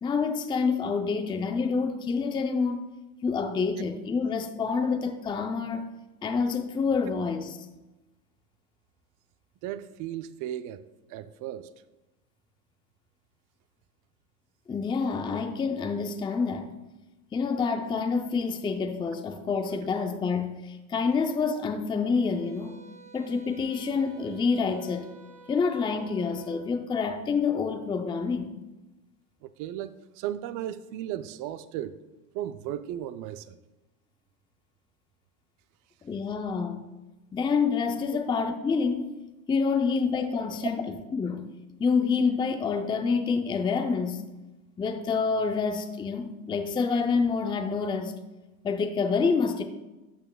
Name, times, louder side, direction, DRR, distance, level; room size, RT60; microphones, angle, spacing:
voice 1, 0.0-2.8 3.2-5.8 6.2-7.6 14.7-16.7 17.3-22.8 23.1-25.1 25.5-28.5 36.0-36.8 37.3-39.1 39.5-41.5 41.8-44.2 44.8-48.1 48.6-49.6, left 5 dB, 10° left, 0.5 m, -27 dB
voice 2, 9.6-10.8 11.1-11.7 29.4-32.0 32.3-33.6 40.6-40.7, right 12 dB, 45° right, 0.6 m, -35 dB
sound 1, 22.1-26.6, right 4 dB, 80° right, 2.4 m, -52 dB
12.5 x 6.8 x 2.3 m
hypercardioid pair, 90°, 46 cm